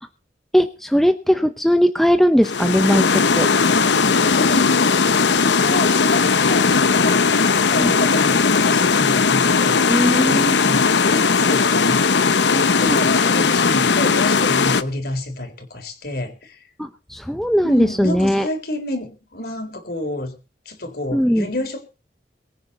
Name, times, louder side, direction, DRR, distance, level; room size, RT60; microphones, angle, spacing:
voice 1, 0.5-3.5 5.7-5.8 7.8-7.9 9.9-10.6 12.8-13.0 16.8-18.5 21.1-21.5, equal, ahead, 8 dB, 0.7 m, -19 dB
sound 1, 2.4-14.8, left 5 dB, 85° left, 0.8 m, -17 dB
voice 2, 3.7-12.1 12.5-16.6 17.6-20.4 20.7-21.8, left 1 dB, 60° left, 6 dB, 3.8 m, -29 dB
23.0 x 9.4 x 4.2 m, 0.33 s
head